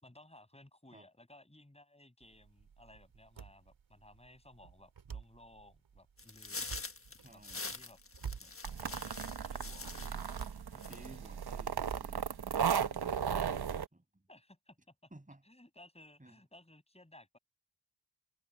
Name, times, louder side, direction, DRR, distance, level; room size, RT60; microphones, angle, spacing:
voice 1, 0.0-6.9 7.3-8.0 8.9-10.2 14.3-15.1 15.4-17.4, left 1 dB, 15° left, 6.3 m, -59 dB
sound 1, 2.2-12.7, right 6 dB, 85° right, 2.2 m, -51 dB
sound 2, 6.2-10.5 10.8-11.3, left 3 dB, 30° left, 1.4 m, -45 dB
voice 2, 7.2-7.8 8.4-8.5 10.6-13.4 13.9-14.2 15.1-15.4 16.2-16.4, right 1 dB, 15° right, 7.9 m, -57 dB
sound 3, 8.6-13.8, right 7 dB, 55° right, 1.0 m, -36 dB
cardioid pair, 65°, 45 cm